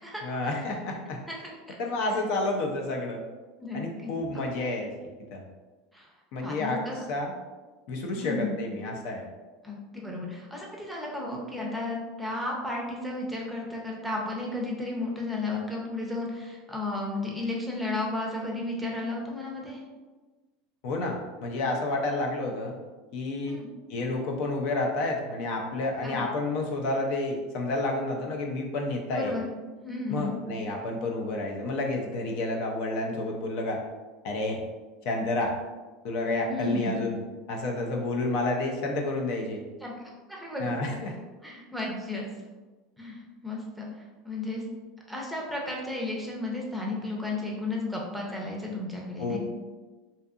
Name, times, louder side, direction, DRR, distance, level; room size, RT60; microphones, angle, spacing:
voice 1, 0.2-1.2 1.8-3.2 3.7-4.9 5.3-5.4 6.3-7.3 7.9-9.2 20.8-22.7 23.1-23.6 23.9-29.4 30.1-33.8 34.2-34.6 35.0-35.5 36.0-37.2 37.5-39.6 40.6-41.2 49.2-49.4, left 2 dB, 65° left, 1 dB, 0.5 m, -30 dB
voice 2, 3.6-4.1 5.9-6.1 6.4-7.0 8.1-8.6 9.6-19.8 23.5-23.7 26.0-26.2 29.1-29.5 29.8-30.4 36.5-37.0 39.8-40.7 41.4-42.2 43.0-43.9 44.2-44.6 45.1-49.4, left 2 dB, 5° right, -2 dB, 0.5 m, -33 dB
2.7 x 2.4 x 2.3 m, 1.3 s
supercardioid pair, 120°, 0 cm